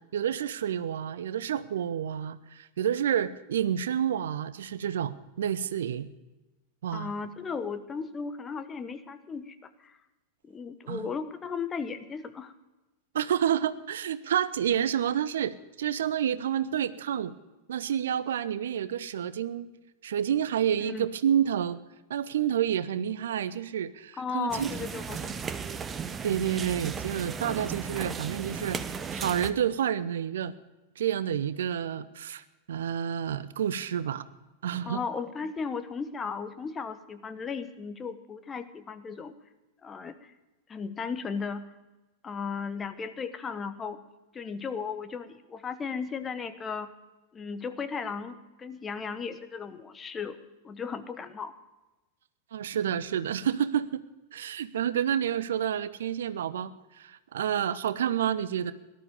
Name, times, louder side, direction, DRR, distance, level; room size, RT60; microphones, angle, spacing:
voice 1, 0.1-6.1 6.8-7.1 10.9-11.1 13.1-17.3 17.7-19.7 20.0-21.8 22.1-24.7 25.2-25.3 26.2-28.8 29.1-30.5 31.0-34.2 34.6-35.0 52.5-54.0 54.3-58.7, right 9 dB, 60° right, 16 dB, 0.6 m, -29 dB
voice 2, 6.9-10.0 10.4-12.5 20.8-21.1 24.2-25.7 34.9-39.3 39.8-40.3 40.7-41.6 42.2-44.0 44.3-46.9 47.3-50.4 50.6-51.5, left 5 dB, 20° left, 11 dB, 1.0 m, -36 dB
sound 1, 24.5-29.5, right 6 dB, 20° right, 0.8 m, -35 dB
18.0 x 12.5 x 5.2 m, 1.1 s
figure-of-eight pair, 90°, 0 cm